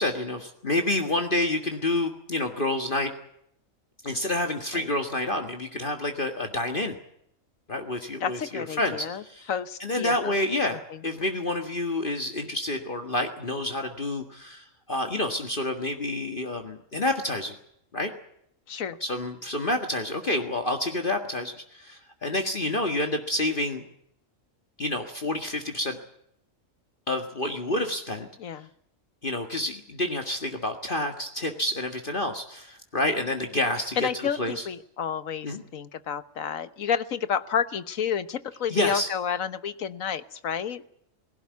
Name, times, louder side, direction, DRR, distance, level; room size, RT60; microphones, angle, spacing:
voice 1, 0.0-3.1 4.0-7.0 7.7-9.5 9.8-17.6 17.9-18.1 19.0-23.8 24.8-26.0 27.1-28.3 29.2-34.7 35.4-35.6 38.7-39.1, left 1 dB, 40° left, 5 dB, 1.9 m, -28 dB
voice 2, 8.2-9.2 9.5-10.3 18.7-19.0 28.4-28.7 34.0-40.9, left 7 dB, 85° left, 14 dB, 1.5 m, -30 dB
20.5 x 17.0 x 9.4 m, 0.72 s
omnidirectional pair, 1.4 m